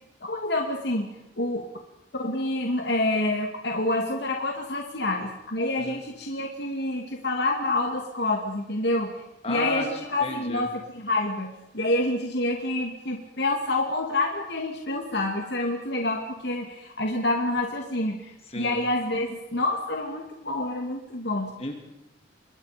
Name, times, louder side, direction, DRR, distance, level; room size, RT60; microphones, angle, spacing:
voice 1, 0.2-1.1 1.4-1.7 2.2-9.2 9.5-21.5, left 2 dB, 65° left, 2 dB, 2.4 m, -27 dB
voice 2, 9.4-9.8 10.2-10.7 18.5-18.8 21.6-21.8, left 2 dB, 35° left, 3 dB, 2.8 m, -33 dB
26.5 x 22.5 x 5.2 m, 0.92 s
head